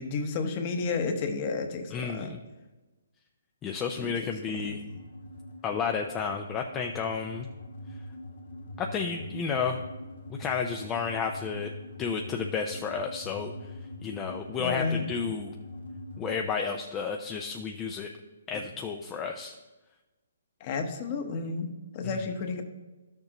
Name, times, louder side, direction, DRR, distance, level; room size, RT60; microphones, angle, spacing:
voice 1, 0.0-2.3 4.0-4.1 14.6-15.0 18.5-18.6 20.6-22.6, left 4 dB, 30° left, 6 dB, 1.0 m, -31 dB
voice 2, 1.9-2.4 3.6-4.8 5.6-7.5 8.8-9.8 10.3-11.7 12.0-13.7 14.0-15.5 16.2-18.1 18.5-19.5 22.0-22.2, left 6 dB, 15° left, 3 dB, 0.4 m, -32 dB
sound 1, 4.5-16.4, left 1 dB, 75° left, 1.9 m, -43 dB
12.0 x 6.6 x 2.9 m, 1.1 s
hypercardioid pair, 155°, 0 cm